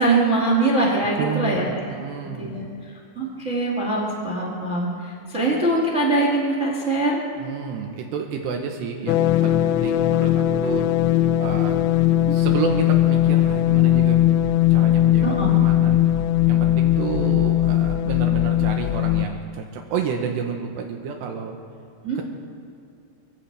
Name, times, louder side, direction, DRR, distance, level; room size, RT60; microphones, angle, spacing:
voice 1, 0.0-1.9 2.2-2.7 3.1-7.2 15.2-15.5 22.0-22.2, right 2 dB, 30° right, -2 dB, 1.4 m, -22 dB
voice 2, 1.2-2.7 7.4-10.9 11.4-11.8 12.3-16.1 16.5-21.6, right 6 dB, 75° right, 2 dB, 3.0 m, -30 dB
sound 1, 9.1-19.3, left 13 dB, 85° left, 3.0 m, -19 dB
26.0 x 16.0 x 3.4 m, 2.6 s
omnidirectional pair, 5.2 m